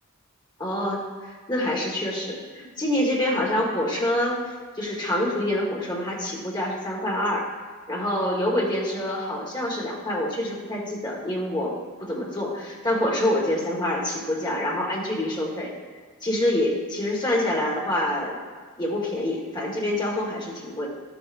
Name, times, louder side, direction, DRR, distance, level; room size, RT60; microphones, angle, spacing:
voice 1, 0.6-4.4 4.7-7.4 7.9-11.7 12.0-15.7 16.2-18.4 18.8-20.9, left 1 dB, 20° left, -3 dB, 1.4 m, -26 dB
12.0 x 7.9 x 2.5 m, 1.5 s
head